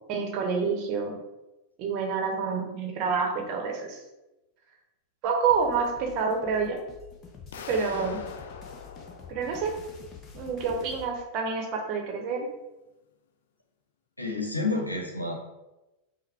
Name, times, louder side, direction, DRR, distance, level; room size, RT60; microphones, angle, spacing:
voice 1, 0.1-1.2 1.8-4.0 5.2-6.8 7.7-8.2 9.3-9.7 10.4-12.5, right 5 dB, 40° right, 2 dB, 0.8 m, -28 dB
sound 1, 5.5-11.1, left 6 dB, 30° left, 0.7 m, -47 dB
sound 2, 7.5-10.4, left 6 dB, 60° left, 0.4 m, -43 dB
voice 2, 14.2-15.3, left 3 dB, 85° left, 1 dB, 0.8 m, -29 dB
5.5 x 2.1 x 3.4 m, 1.0 s
figure-of-eight pair, 90°, 0 cm